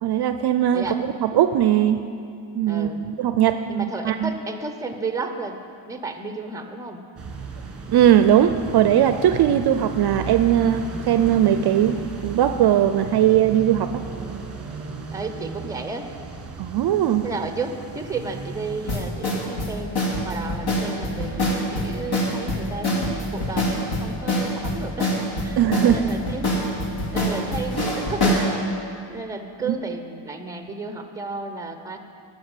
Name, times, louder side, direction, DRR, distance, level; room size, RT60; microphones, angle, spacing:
voice 1, 0.0-0.9 1.2-2.0 2.5-4.3 7.9-14.0 16.6-17.3 25.6-26.0 29.7-29.8, right 10 dB, 55° right, 10 dB, 0.5 m, -19 dB
voice 2, 0.7-1.0 2.7-3.0 3.7-5.6 5.9-7.0 15.1-16.1 17.2-25.2 25.4-25.6 25.9-26.5 27.1-28.5 29.1-32.0, right 3 dB, 5° right, 6 dB, 0.8 m, -32 dB
sound 1, 7.2-18.9, right 4 dB, 30° right, 1.5 m, -35 dB
sound 2, 18.9-28.5, left 1 dB, 50° left, 2.4 m, -24 dB
12.5 x 6.2 x 8.9 m, 2.4 s
cardioid pair, 120°, 48 cm